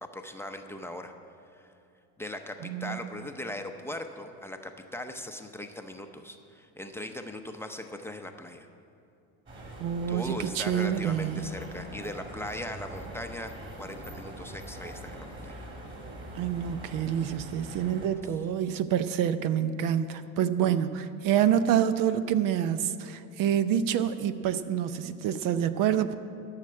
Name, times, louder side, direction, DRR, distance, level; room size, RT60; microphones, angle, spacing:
voice 1, 0.0-1.1 1.5-1.7 2.2-8.7 10.1-13.5 13.8-15.6, left 1 dB, 5° left, 4 dB, 0.6 m, -39 dB
voice 2, 2.6-3.0 9.8-11.5 16.3-26.1, right 9 dB, 60° right, 12 dB, 0.7 m, -27 dB
sound 1, 9.5-18.1, right 1 dB, 30° right, 2.9 m, -43 dB
13.5 x 6.6 x 8.6 m, 2.6 s
cardioid pair, 120°, 37 cm